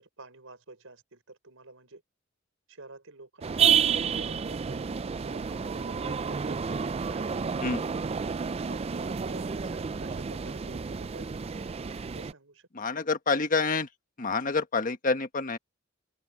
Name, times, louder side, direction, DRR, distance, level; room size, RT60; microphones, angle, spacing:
voice 1, 0.0-2.0 2.7-5.0 5.2-8.1 8.7-11.5 12.1-12.9, right 3 dB, 75° right, 5.6 m, -49 dB
sound 1, 3.4-12.3, right 6 dB, 30° right, 0.4 m, -30 dB
voice 2, 12.7-13.9 14.2-15.6, left 4 dB, 40° left, 1.3 m, -27 dB
open air
head